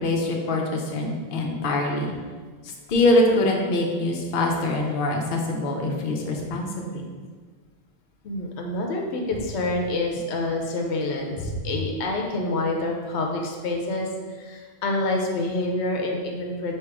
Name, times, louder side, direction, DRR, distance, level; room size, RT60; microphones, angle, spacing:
voice 1, 0.0-2.1 2.9-7.0, left 2 dB, 60° left, 1 dB, 0.8 m, -24 dB
voice 2, 8.2-16.8, left 2 dB, 85° left, 1 dB, 0.9 m, -27 dB
3.4 x 2.9 x 4.7 m, 1.5 s
omnidirectional pair, 1.1 m